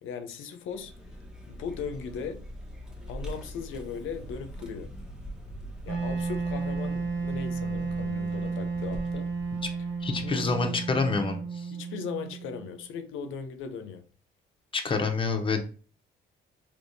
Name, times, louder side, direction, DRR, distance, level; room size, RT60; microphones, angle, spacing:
voice 1, 0.0-0.9 1.5-2.4 3.1-4.9 5.8-9.3 10.1-10.4 11.7-14.1, left 6 dB, 80° left, 0.6 m, -38 dB
Vehicle, 0.6-11.0, equal, 5° right, 0.8 m, -43 dB
Wind instrument woodwind instrument, 5.9-12.8, right 4 dB, 80° right, 1.1 m, -33 dB
voice 2, 10.0-11.7 14.7-15.6, left 4 dB, 25° left, 0.7 m, -27 dB
3.4 x 2.9 x 2.6 m
cardioid pair, 90°, 20 cm